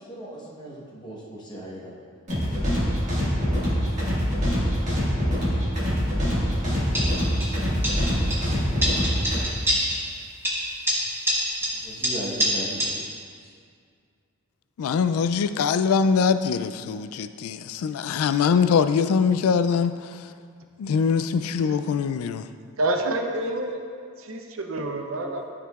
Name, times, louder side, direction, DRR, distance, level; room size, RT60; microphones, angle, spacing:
voice 1, 0.0-2.0 11.3-12.9 13.4-13.5, right 1 dB, 20° left, -5 dB, 1.0 m, -38 dB
sound 1, 2.3-9.4, equal, 35° right, 1.8 m, -24 dB
sound 2, 6.9-7.6 7.8-8.5 8.8-10.1 10.4-12.9, equal, 10° right, 0.9 m, -26 dB
voice 2, 14.8-20.1 20.8-22.4, left 6 dB, 85° left, 12 dB, 0.3 m, -23 dB
voice 3, 22.8-23.8 24.2-25.4, right 2 dB, 75° right, 4 dB, 0.6 m, -28 dB
12.5 x 4.8 x 2.4 m, 2.1 s
head